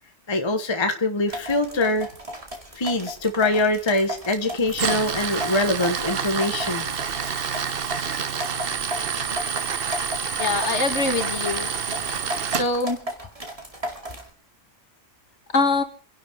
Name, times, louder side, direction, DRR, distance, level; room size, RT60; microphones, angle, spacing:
voice 1, 0.3-2.1 2.8-6.8, left 2 dB, 20° left, 6 dB, 1.2 m, -23 dB
sound 1, 1.3-14.3, equal, 25° right, 2.5 m, -35 dB
Tools, 4.7-12.6, right 6 dB, 50° right, 1.0 m, -28 dB
voice 2, 10.4-11.7 12.5-13.0 15.5-15.8, left 3 dB, 55° left, 7 dB, 1.8 m, -23 dB
28.5 x 11.5 x 3.6 m, 0.40 s
omnidirectional pair, 1.4 m